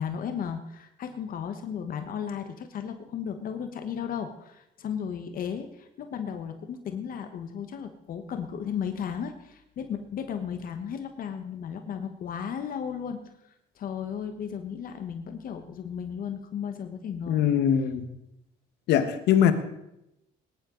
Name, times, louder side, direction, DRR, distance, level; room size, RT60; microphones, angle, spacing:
voice 1, 0.0-13.2 13.8-17.5, left 7 dB, 55° left, 7 dB, 1.3 m, -35 dB
voice 2, 17.3-18.0 18.9-19.5, left 9 dB, 80° left, 9 dB, 1.4 m, -22 dB
20.0 x 10.5 x 3.9 m, 0.84 s
cardioid pair, 110°, 17 cm